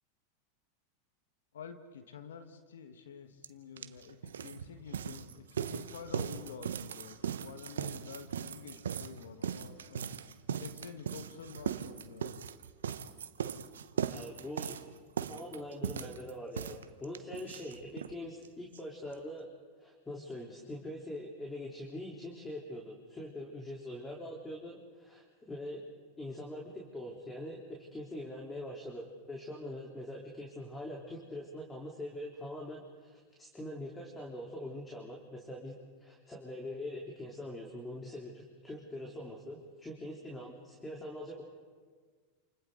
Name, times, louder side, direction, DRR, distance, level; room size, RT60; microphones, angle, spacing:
voice 1, 1.5-10.1 10.5-12.4, left 6 dB, 80° left, 7 dB, 1.6 m, -49 dB
sound 1, 3.4-3.5 3.8-18.2 18.4-18.5 18.7-18.8 19.1-19.2, right 8 dB, 85° right, 0.9 m, -39 dB
voice 2, 14.0-14.8 15.3-19.5 19.8-25.8 26.2-41.4, left 1 dB, 15° left, -2 dB, 3.7 m, -43 dB
29.0 x 28.0 x 4.0 m, 1.5 s
hypercardioid pair, 100°, 0 cm